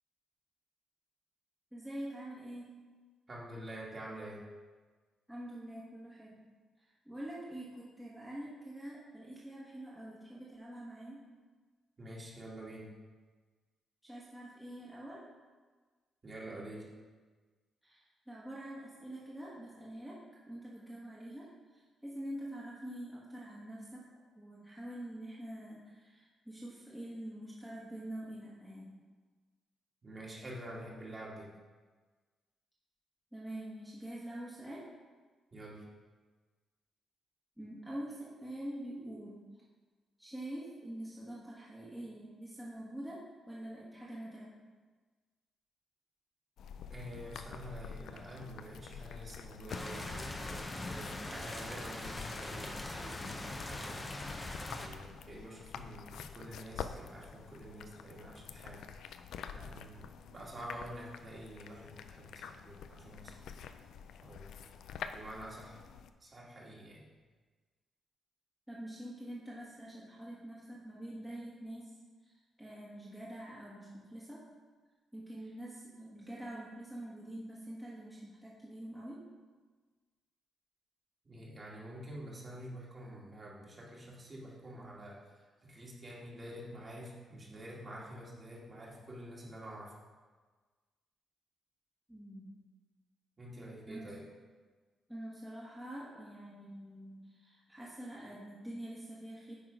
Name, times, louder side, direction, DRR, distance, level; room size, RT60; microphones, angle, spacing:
voice 1, 1.7-2.7 5.3-6.4 6.8-11.2 14.0-15.2 17.8-20.2 20.5-21.5 21.7-24.0 24.3-28.9 33.3-34.8 37.6-39.4 40.2-44.5 68.7-71.9 72.3-74.4 75.1-79.2 92.1-92.6 93.9-94.1 95.1-99.5, right 1 dB, 5° right, -7 dB, 1.4 m, -45 dB
voice 2, 3.3-4.4 12.0-12.9 16.2-16.8 30.0-31.5 35.5-35.8 46.9-54.1 54.7-58.8 59.5-63.6 64.2-64.5 65.1-65.8 66.2-67.0 81.3-85.2 85.6-89.9 93.4-94.2, right 1 dB, 30° right, -4 dB, 1.9 m, -47 dB
sound 1, 46.6-66.1, left 7 dB, 80° left, 0.4 m, -48 dB
sound 2, 49.7-54.9, left 2 dB, 20° left, 0.8 m, -41 dB
9.2 x 4.0 x 5.0 m, 1.4 s
cardioid pair, 120°, 0 cm